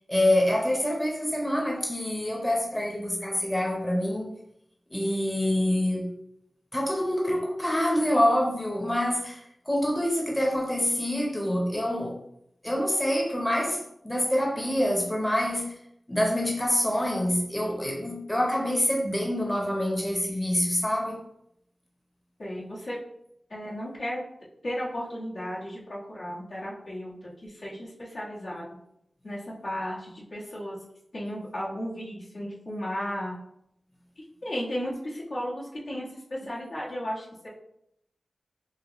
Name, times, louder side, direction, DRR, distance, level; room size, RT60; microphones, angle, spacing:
voice 1, 0.1-4.3 4.9-6.1 6.7-12.2 12.6-15.8 16.1-21.2, left 1 dB, 15° left, 0.8 m, -26 dB
voice 2, 22.4-23.0 23.5-24.2 24.6-28.7 29.2-30.8 31.1-33.4 34.2-37.5, equal, 70° left, 1.5 m, -34 dB
5.4 x 2.2 x 2.9 m
cardioid pair, 55°, 0 cm